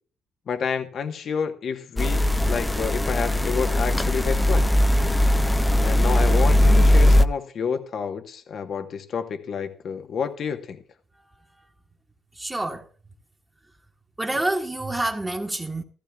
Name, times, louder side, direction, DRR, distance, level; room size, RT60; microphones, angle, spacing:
voice 1, 0.5-4.7 5.8-10.8, left 6 dB, 60° left, 1.2 m, -29 dB
sound 1, 2.0-7.3, left 1 dB, 10° left, 0.6 m, -19 dB
voice 2, 12.4-12.8 14.2-15.8, right 2 dB, 15° right, 1.5 m, -27 dB
15.5 x 14.0 x 2.3 m
cardioid pair, 90°, 0 cm